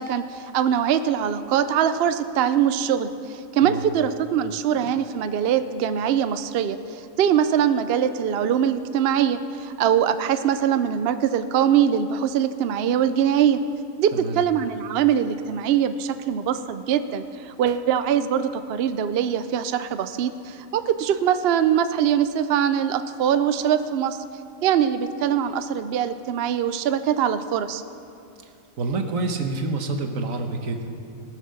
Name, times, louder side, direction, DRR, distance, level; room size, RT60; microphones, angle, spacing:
voice 1, 0.0-13.6 14.0-24.2 24.6-27.8, right 9 dB, 60° right, 10 dB, 0.6 m, -22 dB
voice 2, 28.8-30.9, right 3 dB, 80° right, 5 dB, 1.4 m, -27 dB
19.0 x 6.5 x 6.4 m, 2.5 s
omnidirectional pair, 1.4 m